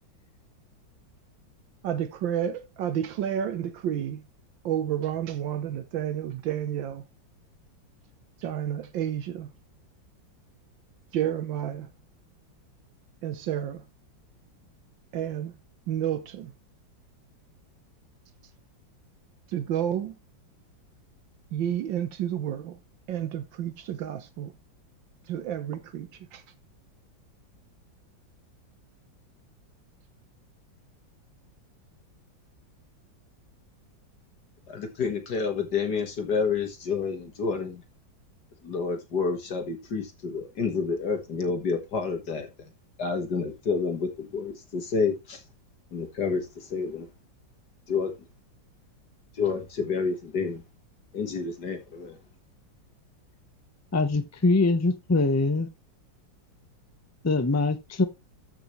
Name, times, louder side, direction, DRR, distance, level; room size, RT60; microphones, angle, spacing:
voice 1, 1.8-4.2 4.6-7.0 8.4-9.5 11.1-11.9 13.2-13.8 15.1-15.5 15.9-16.5 19.5-20.2 21.5-22.8 23.1-24.5 25.3-26.4, right 10 dB, 75° right, 1.5 m, -30 dB
voice 2, 34.7-37.8 38.6-42.7 43.0-45.4 45.9-47.1 47.9-48.1 49.3-50.6 51.1-52.2, left 5 dB, 60° left, 2.1 m, -29 dB
voice 3, 53.9-55.7 57.2-58.0, left 3 dB, 25° left, 0.3 m, -23 dB
13.5 x 6.0 x 3.2 m
omnidirectional pair, 2.1 m